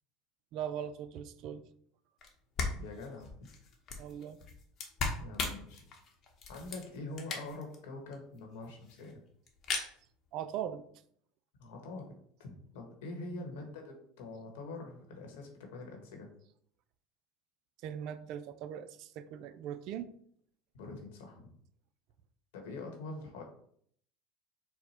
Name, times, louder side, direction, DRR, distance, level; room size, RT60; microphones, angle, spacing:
voice 1, 0.5-1.6 4.0-4.4 10.3-10.8 13.3-13.4 17.8-20.1, right 9 dB, 60° right, 12 dB, 0.4 m, -40 dB
sound 1, 2.2-2.3 2.6-7.8 8.1-8.2 8.4-8.5 8.6-9.1 9.5-9.9, left 4 dB, 40° left, 0.9 m, -38 dB
voice 2, 2.7-3.3 5.2-5.9 6.5-9.2 11.6-16.3 20.7-21.5 22.5-23.4, left 2 dB, 85° left, 2 dB, 1.2 m, -45 dB
4.5 x 2.2 x 4.2 m, 0.64 s
supercardioid pair, 120°, 0 cm